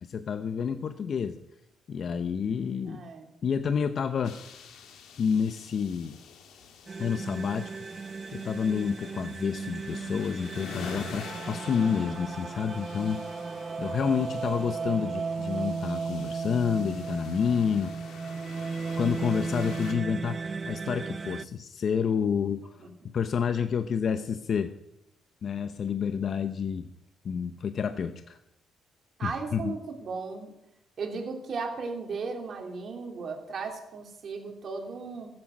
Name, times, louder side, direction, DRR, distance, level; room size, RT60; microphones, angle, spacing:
voice 1, 0.0-1.4 1.9-3.0 3.4-4.4 5.2-6.2 7.0-7.7 8.3-13.3 13.8-17.9 19.0-22.8 23.1-24.7 25.4-26.9 27.2-28.4 29.2-29.8, left 7 dB, 55° left, 10 dB, 0.7 m, -29 dB
voice 2, 2.9-3.3 22.8-22.9 29.2-30.5 31.0-35.3, right 4 dB, 55° right, 2 dB, 3.0 m, -36 dB
sound 1, 4.2-19.9, left 6 dB, 85° left, 1.8 m, -47 dB
sound 2, 6.9-21.4, right 4 dB, 35° right, 0.4 m, -35 dB
14.5 x 8.7 x 6.4 m, 0.86 s
cardioid pair, 90°, 0 cm